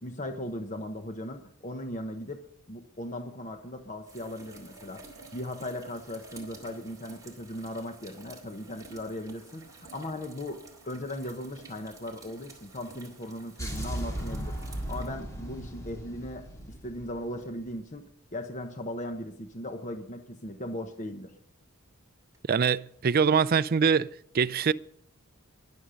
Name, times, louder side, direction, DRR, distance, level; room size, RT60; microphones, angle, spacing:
voice 1, 0.0-2.4 2.7-5.1 5.3-14.6 14.9-16.5 16.8-18.0 18.3-21.3, left 1 dB, 35° left, 1.1 m, -38 dB
sound 1, 4.1-15.9 17.4-17.5 22.3-22.4, right 3 dB, 15° right, 2.6 m, -51 dB
sound 2, 13.6-17.7, right 1 dB, 15° left, 2.8 m, -37 dB
voice 2, 22.5-24.1 24.3-24.7, right 6 dB, 45° right, 0.4 m, -23 dB
21.5 x 7.4 x 5.1 m
head